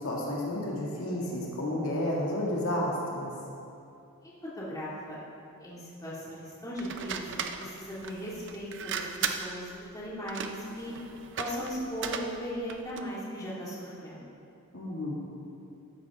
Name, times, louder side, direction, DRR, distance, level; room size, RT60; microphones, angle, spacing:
voice 1, 0.0-3.3 14.7-15.1, left 1 dB, 70° left, -4 dB, 2.1 m, -31 dB
voice 2, 4.2-5.2 5.6-11.0 11.4-14.4, equal, 15° left, -7 dB, 2.3 m, -38 dB
sound 1, 6.8-13.1, right 6 dB, 55° right, 0.6 m, -37 dB
14.0 x 10.5 x 3.6 m, 2.6 s
head